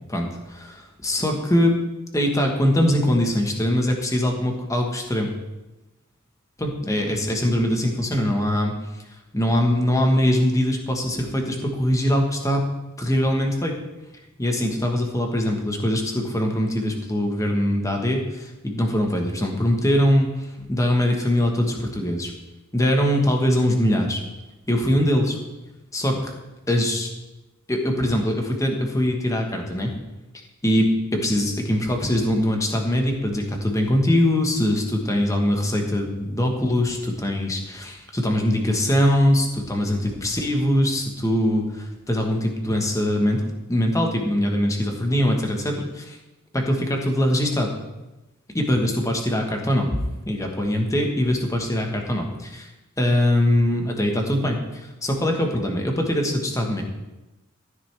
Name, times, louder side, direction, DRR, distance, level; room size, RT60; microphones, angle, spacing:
voice 1, 0.1-1.7 2.1-5.3 6.6-8.7 9.3-12.6 13.0-13.7 14.4-22.3 22.7-24.2 24.7-25.4 25.9-26.3 26.7-27.1 27.7-29.9 30.6-46.2 46.5-47.7 48.5-49.9 50.3-52.7 53.0-56.8, left 1 dB, 15° left, 2 dB, 1.3 m, -22 dB
13.5 x 9.6 x 3.4 m, 1.0 s
head